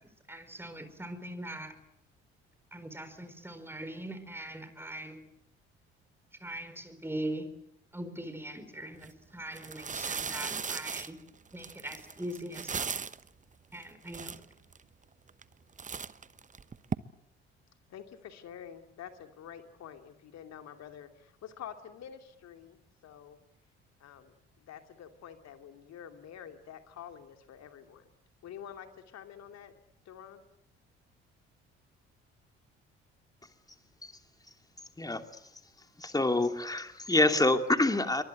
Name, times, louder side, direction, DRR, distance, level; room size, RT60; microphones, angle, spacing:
voice 1, 0.0-1.8 2.7-5.2 6.4-7.5 7.9-11.2 11.5-12.9 13.7-14.5, right 1 dB, 5° right, 9 dB, 4.6 m, -41 dB
sound 1, 8.9-9.1 9.5-13.3 13.8-13.9 14.1-14.8 15.3-15.5 15.8-16.9, right 6 dB, 25° right, 1.0 m, -37 dB
voice 2, 17.9-23.4 24.0-28.1 28.4-29.7 30.1-30.4, left 9 dB, 50° left, 6 dB, 2.8 m, -48 dB
voice 3, 36.0-38.2, left 2 dB, 10° left, 7 dB, 2.7 m, -26 dB
28.0 x 24.0 x 7.9 m, 0.74 s
figure-of-eight pair, 50°, 33 cm